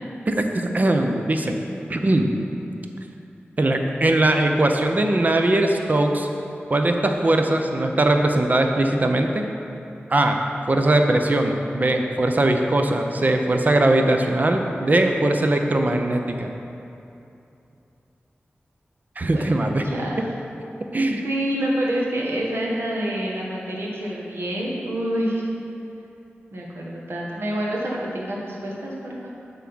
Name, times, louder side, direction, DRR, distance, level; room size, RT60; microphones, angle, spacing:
voice 1, 0.3-1.6 1.9-2.3 3.6-6.3 6.7-9.5 10.1-10.4 10.7-16.5 19.2-19.9 20.2-20.3 20.9-21.2, right 1 dB, 40° right, 4 dB, 0.6 m, -20 dB
voice 2, 21.2-25.5 26.5-29.3, right 1 dB, 65° right, -4 dB, 1.3 m, -27 dB
7.4 x 3.6 x 6.1 m, 2.8 s
wide cardioid pair, 60°, 4 cm